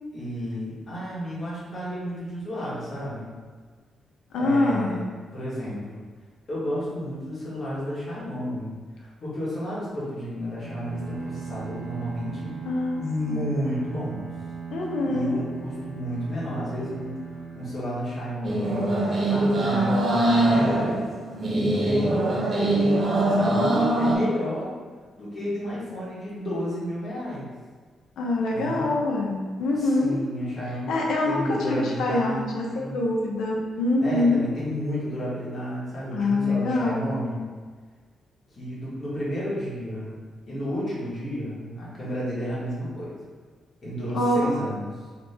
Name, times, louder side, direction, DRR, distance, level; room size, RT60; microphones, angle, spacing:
voice 1, 0.1-3.3 4.4-5.0 5.3-6.0 6.5-12.5 13.0-14.3 15.0-18.9 19.3-21.1 21.5-24.7 25.2-27.4 28.5-28.9 29.8-30.9 31.2-33.0 34.0-37.4 38.5-40.2 40.5-43.1 43.8-44.8, equal, 30° left, -8 dB, 1.5 m, -32 dB
voice 2, 4.3-5.0 12.6-13.0 13.3-13.5 14.7-15.4 28.2-30.2 30.9-34.5 36.1-37.1 44.1-44.5, left 2 dB, 85° left, -2 dB, 0.8 m, -24 dB
Bowed string instrument, 10.5-18.5, right 6 dB, 90° right, 0.8 m, -39 dB
sound 1, 18.4-24.2, right 1 dB, 35° right, 0.9 m, -22 dB
3.4 x 3.1 x 4.2 m, 1.5 s
wide cardioid pair, 165°, 0 cm